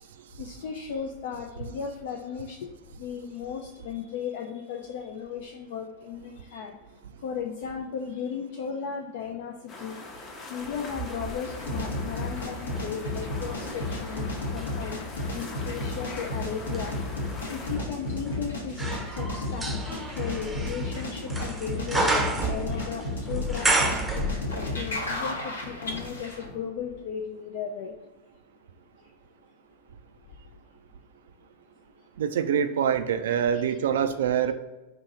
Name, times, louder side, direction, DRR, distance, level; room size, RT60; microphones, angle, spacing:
voice 1, 0.4-2.6 3.0-6.8 7.2-14.9 15.3-16.9 17.5-18.8 19.1-23.9 24.5-28.0 33.3-33.8 34.0-34.5, left 7 dB, 50° left, 2 dB, 0.4 m, -36 dB
sound 1, 9.7-17.8, left 2 dB, 30° left, 0.7 m, -42 dB
sound 2, 10.7-12.9 13.5-24.8 25.1-25.2, right 2 dB, 10° right, 0.7 m, -32 dB
sound 3, 11.4-26.6, left 2 dB, 70° left, 0.9 m, -33 dB
voice 2, 32.2-34.5, right 8 dB, 60° right, 10 dB, 0.3 m, -25 dB
4.5 x 2.6 x 4.0 m, 1.1 s
figure-of-eight pair, 90°, 0 cm